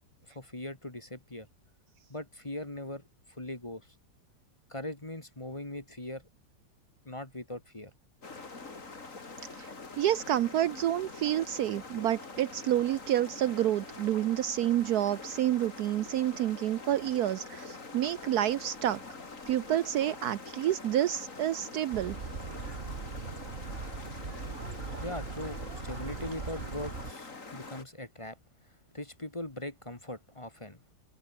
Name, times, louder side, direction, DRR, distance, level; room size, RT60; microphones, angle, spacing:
voice 1, 0.3-1.5 2.1-3.9 4.7-6.2 7.0-7.9 25.0-28.4 28.9-30.8, left 1 dB, 20° left, 1.8 m, -40 dB
sound 1, 8.2-27.8, left 3 dB, 45° left, 3.3 m, -45 dB
voice 2, 10.0-19.0 19.5-22.2, right 12 dB, 70° right, 1.1 m, -29 dB
sound 2, 21.9-27.1, right 4 dB, 35° right, 1.8 m, -40 dB
omnidirectional pair, 1.9 m